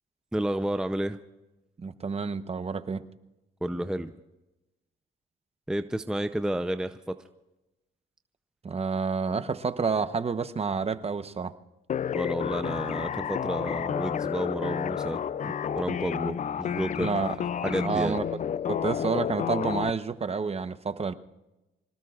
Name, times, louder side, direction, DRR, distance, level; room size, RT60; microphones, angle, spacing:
voice 1, 0.3-1.2 3.6-4.1 5.7-7.2 12.1-17.1 17.6-18.2, right 1 dB, 5° right, 9 dB, 0.6 m, -31 dB
voice 2, 1.8-3.0 8.6-11.5 17.0-18.2 18.7-21.1, right 5 dB, 30° right, 11 dB, 1.0 m, -29 dB
sound 1, 11.9-19.9, left 8 dB, 40° left, 0.4 m, -31 dB
26.0 x 18.5 x 2.5 m, 0.99 s
cardioid pair, 90°, 20 cm